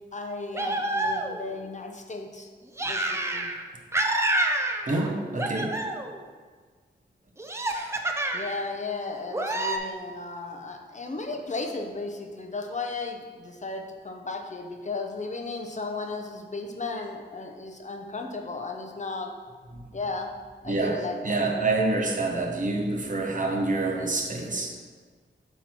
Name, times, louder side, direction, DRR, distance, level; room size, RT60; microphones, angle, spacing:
voice 1, 0.1-2.5 2.8-3.5 8.3-19.3 19.9-20.3 20.6-21.4, left 3 dB, 40° left, 3 dB, 0.6 m, -35 dB
sound 1, 0.5-1.5 2.8-3.6 3.9-5.1 5.4-6.2 7.4-8.6 9.3-9.8, right 1 dB, 15° right, 0.5 m, -28 dB
voice 2, 4.9-5.7 19.7-19.8 20.7-24.8, right 2 dB, 45° right, 1 dB, 1.0 m, -27 dB
8.0 x 3.1 x 5.9 m, 1.5 s
wide cardioid pair, 125°, 19 cm